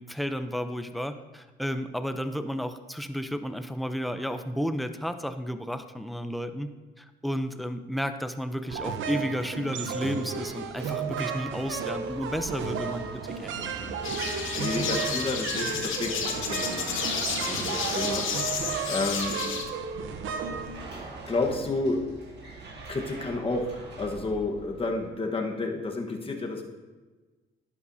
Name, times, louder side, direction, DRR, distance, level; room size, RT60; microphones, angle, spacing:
voice 1, 0.0-6.7 7.0-13.7, equal, ahead, 9 dB, 0.5 m, -32 dB
sound 1, 8.7-21.4, right 6 dB, 80° right, 0.8 m, -34 dB
sound 2, 10.2-25.1, right 3 dB, 60° right, 1.9 m, -43 dB
sound 3, 14.0-19.6, left 6 dB, 80° left, 1.0 m, -32 dB
voice 2, 14.6-19.5 21.2-22.0 22.9-26.6, left 3 dB, 30° left, 1 dB, 1.2 m, -31 dB
11.0 x 8.6 x 2.7 m, 1.3 s
cardioid pair, 90°, 20 cm